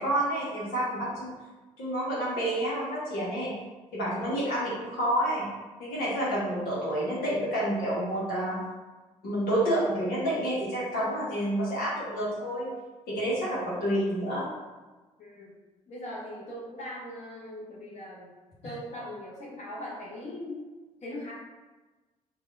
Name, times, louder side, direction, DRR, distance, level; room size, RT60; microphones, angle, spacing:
voice 1, 0.0-1.3 1.8-3.5 3.9-5.5 5.8-8.6 9.2-12.7 13.1-14.5, right 1 dB, 60° left, -8 dB, 1.2 m, -29 dB
voice 2, 15.2-15.5 15.9-18.3 18.6-20.6 21.0-21.3, left 1 dB, 40° left, -6 dB, 1.2 m, -40 dB
3.4 x 2.4 x 4.0 m, 1.2 s
figure-of-eight pair, 45°, 18 cm